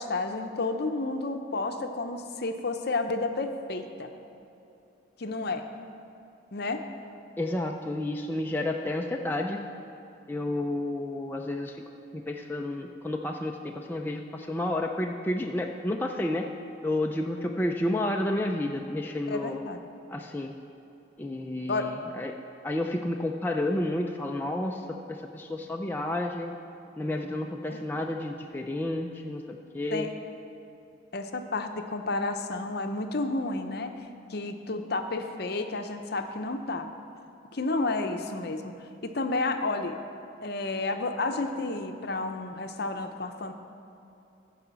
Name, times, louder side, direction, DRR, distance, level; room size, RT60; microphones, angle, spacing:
voice 1, 0.0-4.1 5.2-5.6 6.5-6.8 19.3-19.8 21.7-21.9 27.7-27.8 29.9-30.1 31.1-33.9 34.3-36.9 37.5-40.0 40.4-43.5, left 3 dB, 50° left, 6 dB, 0.7 m, -31 dB
voice 2, 7.4-9.6 10.3-11.8 12.1-16.5 16.8-19.6 20.1-20.5 21.2-22.3 22.6-26.5 27.0-30.1, left 1 dB, 10° left, 1 dB, 0.4 m, -31 dB
14.5 x 4.9 x 6.9 m, 2.9 s
head